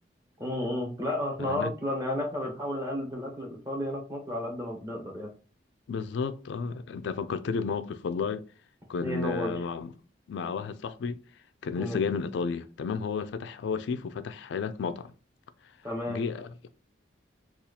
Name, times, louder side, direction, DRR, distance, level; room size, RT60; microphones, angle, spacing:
voice 1, 0.4-5.3 9.0-9.6 11.8-12.0 15.8-16.2, left 1 dB, 20° right, 0.9 m, -32 dB
voice 2, 1.4-1.7 5.9-8.4 8.9-9.9 10.3-11.2 11.6-15.1 16.1-16.7, left 5 dB, 75° left, 0.3 m, -32 dB
2.8 x 2.4 x 3.8 m
head